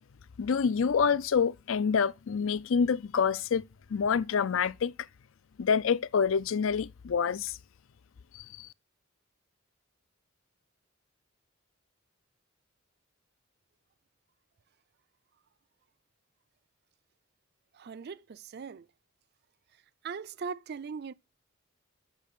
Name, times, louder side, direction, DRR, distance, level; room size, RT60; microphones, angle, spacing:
voice 1, 0.4-3.6 3.9-4.9 5.6-7.6 8.3-8.7, left 6 dB, 70° left, 0.4 m, -27 dB
voice 2, 17.7-18.9 20.0-21.1, right 5 dB, 50° right, 0.4 m, -39 dB
8.1 x 6.5 x 6.8 m
head